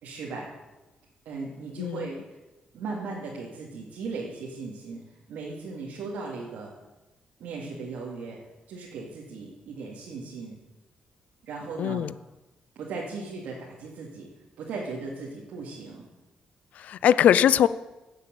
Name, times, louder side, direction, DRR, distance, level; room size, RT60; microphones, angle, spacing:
voice 1, 0.0-0.5 1.2-2.2 2.7-5.0 5.3-6.7 7.4-8.4 8.7-10.5 11.4-12.0 12.7-14.3 14.6-16.1, right 4 dB, 85° right, -4 dB, 2.6 m, -37 dB
voice 2, 1.8-2.1 11.8-12.1 16.7-17.7, left 10 dB, 65° left, 16 dB, 0.5 m, -21 dB
16.0 x 8.2 x 7.9 m, 1.1 s
wide cardioid pair, 170°, 3 cm